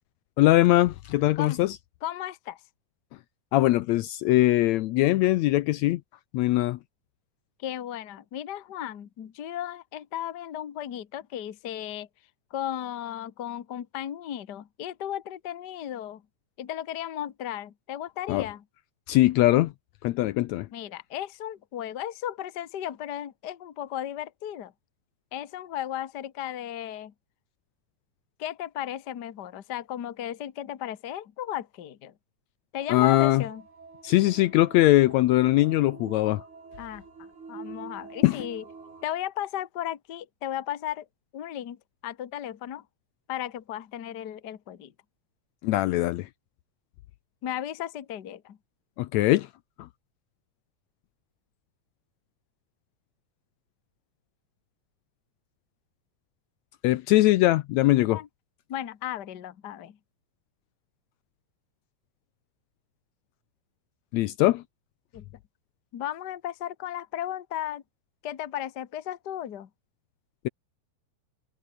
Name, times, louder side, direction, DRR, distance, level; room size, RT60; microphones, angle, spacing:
voice 1, 0.4-1.8 3.5-6.0 6.3-6.8 18.3-18.4 19.1-19.7 20.0-20.7 32.9-33.4 34.0-36.4 38.2-38.4 45.6-46.3 49.0-49.5 56.8-58.2 64.1-64.6, left 16 dB, 75° left, 1.9 m, -21 dB
voice 2, 2.0-2.6 7.6-12.1 12.5-16.2 16.6-18.6 20.7-24.7 25.3-27.1 28.4-32.1 32.7-33.6 36.8-37.0 37.5-38.6 39.0-41.0 41.3-41.8 42.0-42.8 43.3-44.9 47.4-48.6 58.1-58.3 58.7-60.0 65.1-65.2 65.9-67.8 68.2-69.7, left 11 dB, 45° left, 1.4 m, -35 dB
sound 1, 32.8-39.1, right 4 dB, 85° right, 7.3 m, -46 dB
omnidirectional pair, 3.3 m